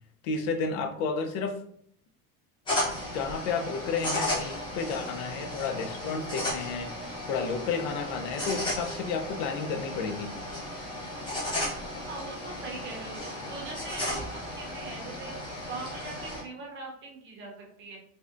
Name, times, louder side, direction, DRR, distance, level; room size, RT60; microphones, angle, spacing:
voice 1, 0.2-1.6 3.1-10.3, left 5 dB, 70° left, 6 dB, 0.5 m, -32 dB
sound 1, 2.7-16.4, left 1 dB, 15° left, 0.7 m, -35 dB
voice 2, 12.0-15.3 15.7-18.0, right 3 dB, 30° right, -1 dB, 0.6 m, -41 dB
2.5 x 2.1 x 2.4 m, 0.66 s
cardioid pair, 160°, 38 cm